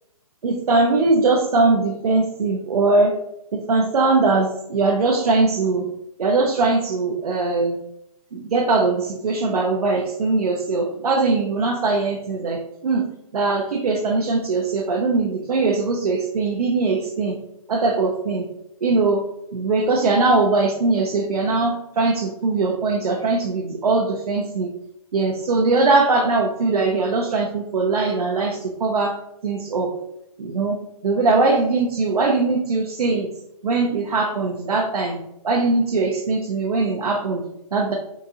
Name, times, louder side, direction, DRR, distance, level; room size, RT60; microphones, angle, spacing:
voice 1, 0.4-3.1 3.5-5.9 6.2-7.8 8.3-13.1 13.3-17.4 17.7-18.5 18.8-19.2 19.5-24.7 25.1-29.2 29.4-29.9 30.4-30.8 31.0-33.3 33.6-35.2 35.4-37.4 37.7-37.9, right 3 dB, 80° right, -1 dB, 0.6 m, -21 dB
3.8 x 2.4 x 2.8 m, 0.78 s
hypercardioid pair, 175°, 19 cm